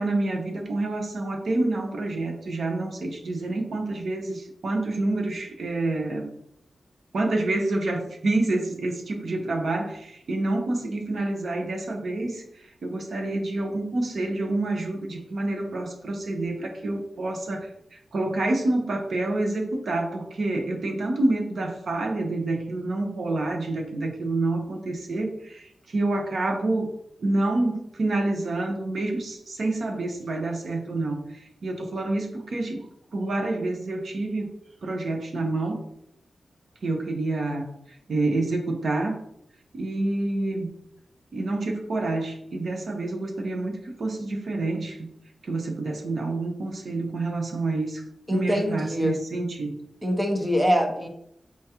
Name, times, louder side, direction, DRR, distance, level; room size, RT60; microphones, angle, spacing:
voice 1, 0.0-6.3 7.1-26.9 27.2-32.9 33.1-34.5 34.8-35.8 36.8-39.2 39.7-40.7 41.3-45.1 45.4-48.0 48.3-49.8, right 2 dB, 60° right, 2 dB, 0.8 m, -28 dB
voice 2, 48.3-49.2 50.0-51.1, equal, 10° right, 2 dB, 0.6 m, -24 dB
4.6 x 3.5 x 2.9 m, 0.74 s
wide cardioid pair, 165°, 0 cm